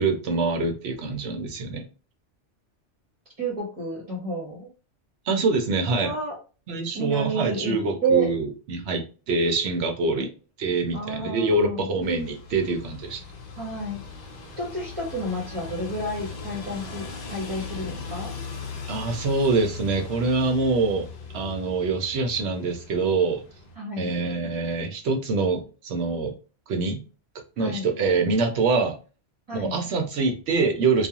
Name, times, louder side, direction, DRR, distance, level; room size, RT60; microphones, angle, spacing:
voice 1, 0.0-1.8 5.3-6.1 6.7-10.3 10.6-13.2 18.9-21.1 21.3-23.4 24.0-26.3 26.7-27.0 27.6-29.0 29.5-31.1, right 3 dB, 70° right, 4 dB, 0.9 m, -25 dB
voice 2, 3.4-4.7 5.9-6.3 6.9-7.8 8.0-8.3 10.2-10.3 10.9-11.9 13.6-14.0 14.6-18.3 23.8-24.1 27.6-27.9 29.5-29.8, right 2 dB, 30° right, -5 dB, 0.9 m, -30 dB
sound 1, 12.0-23.7, left 5 dB, 50° left, 0.6 m, -39 dB
2.4 x 2.2 x 2.8 m, 0.34 s
omnidirectional pair, 1.2 m